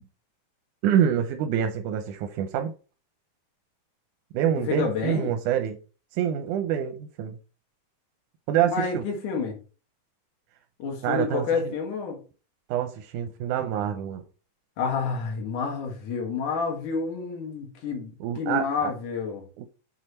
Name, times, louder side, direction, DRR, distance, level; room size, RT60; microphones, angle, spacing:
voice 1, 0.8-2.7 4.3-5.8 6.1-7.4 8.5-9.0 11.0-11.7 12.7-14.2 18.2-18.9 19.6-19.7, right 9 dB, 90° right, 2.2 m, -26 dB
voice 2, 4.6-5.3 8.7-9.6 10.8-12.2 14.8-19.5, left 5 dB, 80° left, 3.3 m, -29 dB
6.5 x 6.1 x 4.2 m
omnidirectional pair, 3.5 m